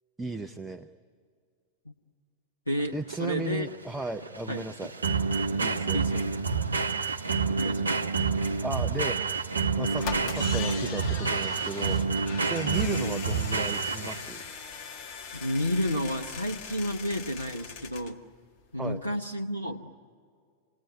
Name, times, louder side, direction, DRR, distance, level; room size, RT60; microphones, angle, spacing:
voice 1, 0.2-0.9 2.9-4.9 5.6-6.0 8.6-9.2 9.8-12.0 12.4-14.4 18.8-19.0, right 3 dB, 10° right, 7 dB, 0.7 m, -35 dB
voice 2, 2.7-3.7 4.5-4.7 5.9-6.3 7.6-8.0 15.3-18.2 18.7-19.9, equal, 85° left, 3 dB, 0.8 m, -31 dB
sound 1, 2.8-14.4, right 4 dB, 75° right, 0.6 m, -28 dB
sound 2, 9.3-9.4 9.9-18.2 18.5-18.6 18.8-18.9, left 6 dB, 40° left, 1.6 m, -40 dB
28.5 x 19.5 x 9.9 m, 2.1 s
figure-of-eight pair, 90°, 0 cm